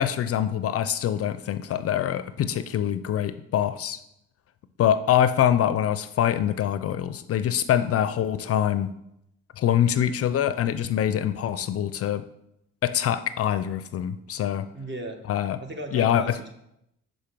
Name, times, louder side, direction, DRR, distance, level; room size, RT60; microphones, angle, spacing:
voice 1, 0.0-4.0 4.8-8.9 9.6-12.2 12.8-14.7 15.3-15.6 15.9-16.4, left 10 dB, 50° left, 13 dB, 0.4 m, -24 dB
voice 2, 14.7-15.2 15.6-16.5, right 2 dB, 35° right, 5 dB, 1.2 m, -36 dB
5.2 x 5.0 x 5.9 m, 0.81 s
cardioid pair, 90°, 30 cm